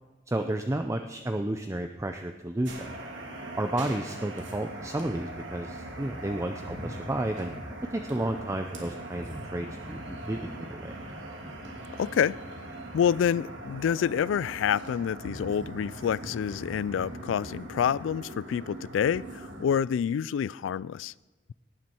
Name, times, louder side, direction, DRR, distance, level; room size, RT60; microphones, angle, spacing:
voice 1, 0.3-2.9 3.6-7.5 7.9-10.0 10.3-11.0, right 1 dB, 15° right, 0.5 m, -32 dB
Boiling water kettle kitchen, 2.6-19.7, right 1 dB, 80° right, 2.6 m, -41 dB
voice 2, 12.0-12.4 12.9-21.1, left 8 dB, 80° left, 0.3 m, -27 dB
18.0 x 9.5 x 4.4 m
head